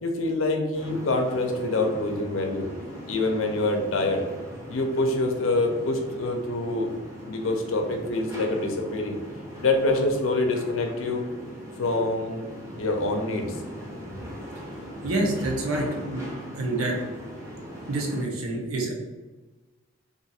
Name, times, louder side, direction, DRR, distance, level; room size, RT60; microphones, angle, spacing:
voice 1, 0.0-2.7 3.1-4.3 4.7-6.9 7.2-9.2 9.6-11.2 11.8-12.4 12.8-13.5, left 2 dB, 70° left, 3 dB, 0.5 m, -25 dB
sound 1, 0.7-18.2, equal, 15° right, 0.6 m, -40 dB
voice 2, 15.0-16.3 16.5-17.0 17.9-18.9, right 2 dB, 85° right, 0 dB, 0.8 m, -27 dB
2.6 x 2.4 x 4.1 m, 1.2 s
head